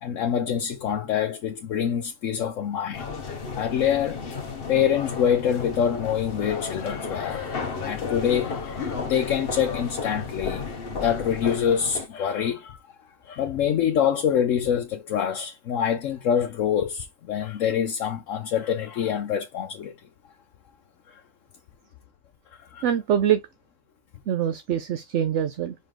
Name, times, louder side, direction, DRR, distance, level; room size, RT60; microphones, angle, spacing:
voice 1, 0.0-3.1 3.5-4.2 4.7-10.6 10.9-12.8 13.3-19.9 22.7-22.8, left 8 dB, 85° left, 1.1 m, -25 dB
sound 1, 2.9-12.1, left 5 dB, 50° left, 1.2 m, -33 dB
voice 2, 22.8-23.4 24.3-25.7, right 9 dB, 70° right, 1.0 m, -24 dB
5.3 x 5.0 x 3.6 m
omnidirectional pair, 1.3 m